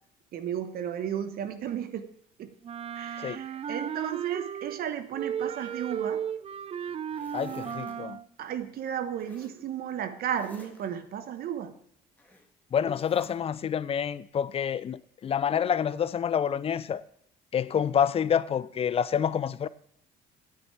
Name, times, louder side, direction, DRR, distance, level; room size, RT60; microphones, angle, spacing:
voice 1, 0.3-2.1 2.4-2.5 2.9-6.3 8.4-11.8, right 9 dB, 65° right, 1.1 m, -34 dB
Wind instrument woodwind instrument, 2.6-4.9 5.1-8.3, right 8 dB, 35° right, 0.4 m, -35 dB
Zipper (clothing), 5.4-6.4 6.8-7.9 9.2-9.6 10.2-10.9 12.2-12.5 12.9-13.3, left 1 dB, 10° left, 1.9 m, -52 dB
voice 2, 7.3-8.2 12.7-17.0 17.5-19.7, left 8 dB, 35° left, 0.5 m, -28 dB
9.4 x 8.8 x 4.5 m
cardioid pair, 110°, 17 cm